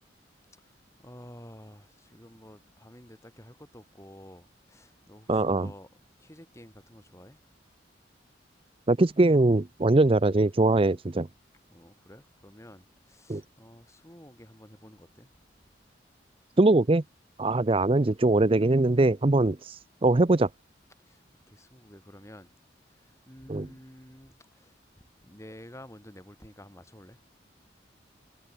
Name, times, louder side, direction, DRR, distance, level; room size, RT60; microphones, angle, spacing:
voice 1, 0.5-5.9 6.2-7.4 11.7-15.3 17.4-17.6 21.0-22.5 22.8-27.2, equal, 15° left, 6.1 m, -51 dB
voice 2, 5.3-5.7 8.9-11.3 13.3-13.4 16.6-17.0 17.4-20.5 23.5-23.7, right 2 dB, 30° right, 0.6 m, -22 dB
head